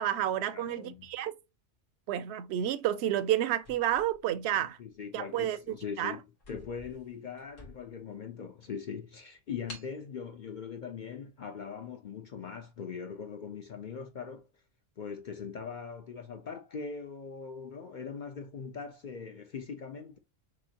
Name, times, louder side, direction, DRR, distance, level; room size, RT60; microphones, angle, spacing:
voice 1, 0.0-1.3 2.1-4.8 5.1-6.2, right 11 dB, 65° right, 0.7 m, -30 dB
voice 2, 0.5-1.1 4.5-6.2 6.5-14.5 15.0-20.2, left 6 dB, 55° left, 0.5 m, -41 dB
sound 1, 3.6-4.9 5.5-5.7 6.0-6.1 6.4-8.1 8.6-8.7 9.7-10.0, left 2 dB, 75° left, 2.0 m, -50 dB
6.2 x 3.0 x 2.8 m
omnidirectional pair, 1.3 m